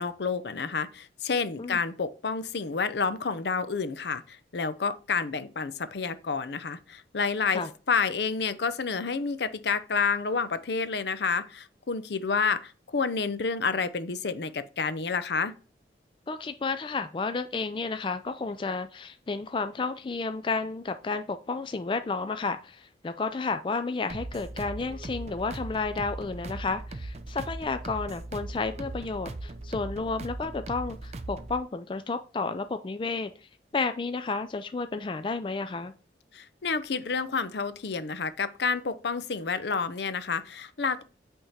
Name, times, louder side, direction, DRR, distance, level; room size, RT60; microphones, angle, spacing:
voice 1, 0.0-15.5 36.3-41.0, left 5 dB, 70° left, 0.6 m, -29 dB
voice 2, 16.3-33.3 33.7-35.9, left 4 dB, 30° left, 0.3 m, -31 dB
sound 1, 24.1-31.6, right 2 dB, 35° right, 0.5 m, -39 dB
8.7 x 3.6 x 4.2 m
head